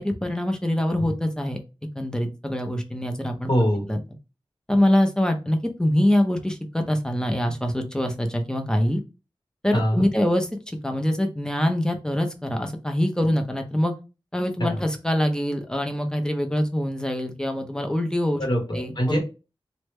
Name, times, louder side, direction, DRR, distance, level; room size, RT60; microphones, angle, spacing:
voice 1, 0.0-1.6 1.9-3.5 3.9-4.0 4.7-9.0 9.6-13.9 14.3-18.4 18.7-19.2, left 1 dB, 10° left, 5 dB, 0.6 m, -24 dB
voice 2, 3.5-3.8 9.7-10.1 14.6-14.8 18.4-19.2, equal, 50° left, 0 dB, 0.9 m, -23 dB
3.2 x 2.1 x 3.1 m, 0.30 s
wide cardioid pair, 75°, 9 cm